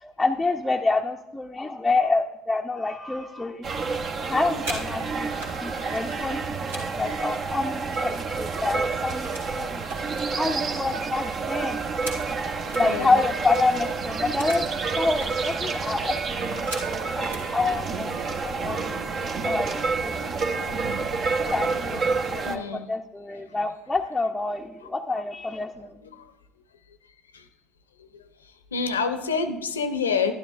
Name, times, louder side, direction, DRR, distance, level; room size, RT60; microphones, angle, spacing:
voice 1, 0.0-3.7 4.2-5.3 5.6-9.9 10.4-11.8 12.7-18.1 18.4-19.0 19.4-20.7 21.2-22.0 22.3-26.0, left 3 dB, 10° left, 1 dB, 0.5 m, -27 dB
sound 1, 3.6-22.6, right 4 dB, 45° right, 0.8 m, -29 dB
sound 2, 4.6-5.5 5.9-8.3 8.6-9.5 9.8-12.9 13.2-13.3 13.5-14.7 15.0-15.3 15.9-17.5 18.3-18.5 18.8-19.2 19.5-20.0, right 1 dB, 90° right, 2.2 m, -40 dB
voice 2, 12.8-13.2 20.2-20.8 21.3-21.5 21.9-22.1 22.4-22.9 23.5-23.6 25.1-25.2 25.5-25.6 26.1-26.3 27.3-27.5 28.0-30.3, left 5 dB, 90° left, 10 dB, 0.6 m, -30 dB
sound 3, 16.4-22.3, right 4 dB, 65° right, 1.1 m, -39 dB
12.0 x 10.5 x 2.5 m, 0.96 s
hypercardioid pair, 65°, 0 cm